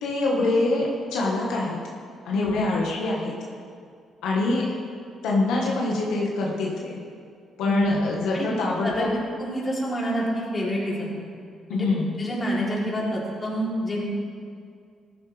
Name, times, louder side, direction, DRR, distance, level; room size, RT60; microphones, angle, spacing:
voice 1, 0.0-1.8 2.2-3.3 4.2-4.7 5.2-7.0 7.6-9.1 11.7-12.1, left 2 dB, 85° left, -3 dB, 1.7 m, -25 dB
voice 2, 7.7-8.0 8.3-8.5 8.8-9.1 9.4-11.1 11.7-11.9 12.2-14.0, equal, 25° left, -5 dB, 3.7 m, -27 dB
15.0 x 11.0 x 3.5 m, 2.2 s
cardioid pair, 90°, 0 cm